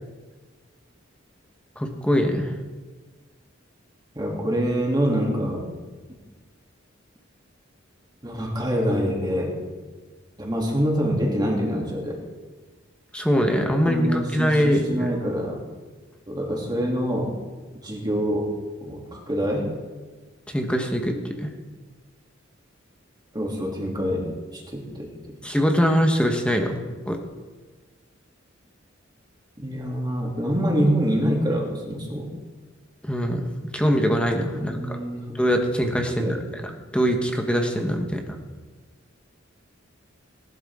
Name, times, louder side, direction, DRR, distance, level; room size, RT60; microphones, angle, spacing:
voice 1, 1.8-2.5 13.1-15.1 20.5-21.5 25.4-27.2 33.0-33.5 33.7-35.0 35.3-36.4 36.9-38.4, equal, 5° left, 3 dB, 1.1 m, -23 dB
voice 2, 4.1-5.6 8.2-9.5 10.4-12.2 13.8-15.6 16.3-17.4 17.8-18.5 18.8-19.7 23.3-24.3 24.5-25.1 29.6-32.3 34.5-35.3 36.2-36.4, equal, 20° right, -1 dB, 2.7 m, -25 dB
18.5 x 11.5 x 3.7 m, 1.3 s
head